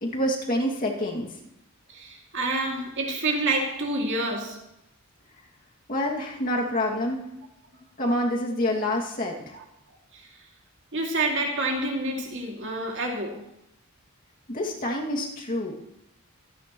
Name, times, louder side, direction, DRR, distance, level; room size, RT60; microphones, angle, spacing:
voice 1, 0.0-1.3 5.9-7.2 8.0-9.6 14.5-15.8, left 1 dB, 40° left, 2.3 m, -27 dB
voice 2, 1.9-4.6 9.5-9.6 10.1-10.3 10.9-13.5, right 2 dB, 55° right, 2.4 m, -28 dB
24.5 x 10.0 x 3.1 m
head